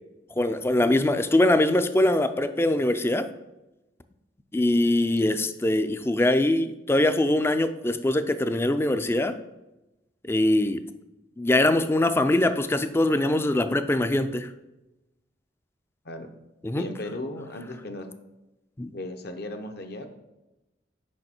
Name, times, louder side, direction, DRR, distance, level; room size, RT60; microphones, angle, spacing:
voice 1, 0.4-3.2 4.5-9.3 10.3-10.8 11.4-14.5 16.6-16.9 18.8-18.9, left 1 dB, 15° left, 10 dB, 0.3 m, -22 dB
voice 2, 16.7-18.1 18.9-20.1, left 1 dB, 55° left, 6 dB, 0.7 m, -36 dB
6.4 x 5.3 x 4.3 m, 0.98 s
head